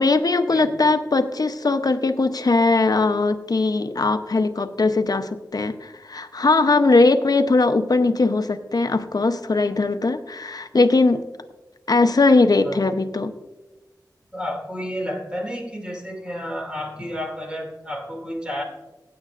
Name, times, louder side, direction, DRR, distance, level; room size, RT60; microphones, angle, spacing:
voice 1, 0.0-11.2 11.9-13.3, left 3 dB, 60° left, 9 dB, 0.7 m, -20 dB
voice 2, 14.3-18.6, equal, 15° right, 1 dB, 2.5 m, -31 dB
16.0 x 8.8 x 2.5 m, 1.1 s
wide cardioid pair, 50°, 7 cm